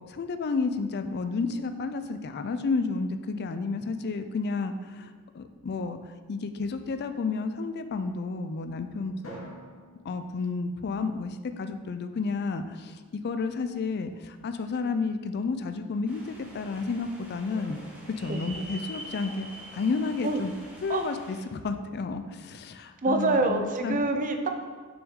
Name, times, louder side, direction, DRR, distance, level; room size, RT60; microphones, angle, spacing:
voice 1, 0.1-6.0 6.3-9.1 10.0-17.8 18.2-19.5 19.7-20.5 20.8-24.0, left 4 dB, 50° left, 9 dB, 0.4 m, -31 dB
Drum, 9.2-11.5, equal, 65° left, 1.6 m, -47 dB
sound 1, 16.0-21.4, right 1 dB, 5° right, 1.5 m, -45 dB
voice 2, 23.0-24.5, right 2 dB, 40° right, 5 dB, 0.6 m, -26 dB
6.2 x 6.2 x 3.7 m, 1.5 s
head